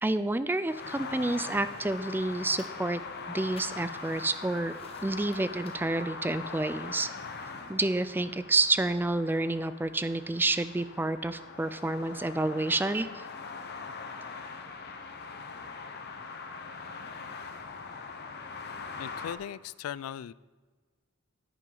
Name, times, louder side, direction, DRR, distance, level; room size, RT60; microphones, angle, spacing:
voice 1, 0.0-3.0 3.3-7.1 7.7-13.2, right 2 dB, 10° right, 12 dB, 0.3 m, -29 dB
sound 1, 0.6-19.4, left 4 dB, 50° left, 0.9 m, -42 dB
sound 2, 1.3-6.6, left 3 dB, 30° left, 1.2 m, -56 dB
voice 2, 19.0-20.3, left 9 dB, 90° left, 20 dB, 0.3 m, -38 dB
10.5 x 9.1 x 4.0 m, 1.4 s
head